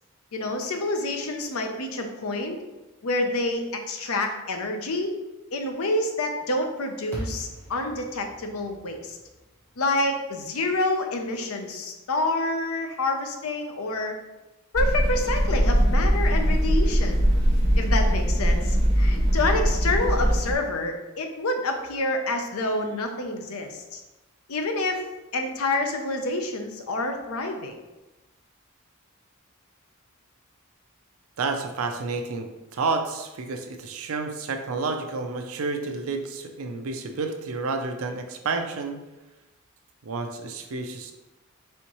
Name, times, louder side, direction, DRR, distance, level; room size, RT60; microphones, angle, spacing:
voice 1, 0.3-2.6 3.0-5.2 5.5-9.2 9.8-14.1 14.7-17.2 17.7-24.0 24.5-25.0 25.3-27.7, left 2 dB, 85° left, 4 dB, 0.6 m, -28 dB
sound 1, 7.1-11.4, equal, 10° left, 1.0 m, -41 dB
sound 2, 14.7-20.5, equal, 50° right, 1.2 m, -21 dB
voice 2, 31.4-39.0 40.0-41.1, right 3 dB, 80° right, 5 dB, 0.5 m, -30 dB
4.4 x 3.5 x 3.0 m, 1.1 s
head